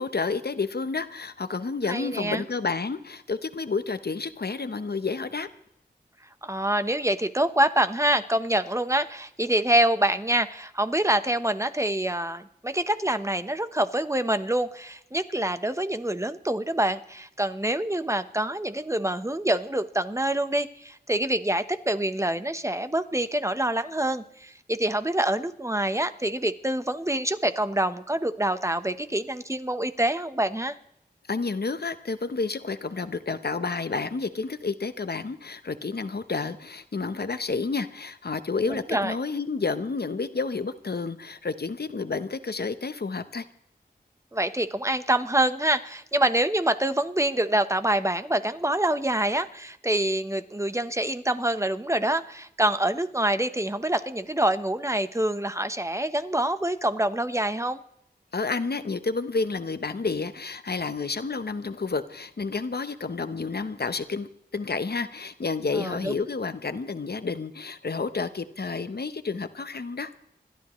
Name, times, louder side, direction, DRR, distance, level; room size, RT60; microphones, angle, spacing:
voice 1, 0.0-5.5 31.3-43.5 58.3-70.1, left 4 dB, 65° left, 11 dB, 0.9 m, -30 dB
voice 2, 1.9-2.4 6.4-30.7 38.7-39.1 44.3-57.8 65.7-66.1, right 1 dB, 15° right, 10 dB, 1.0 m, -26 dB
27.5 x 12.5 x 3.2 m, 0.76 s
wide cardioid pair, 50°, 17 cm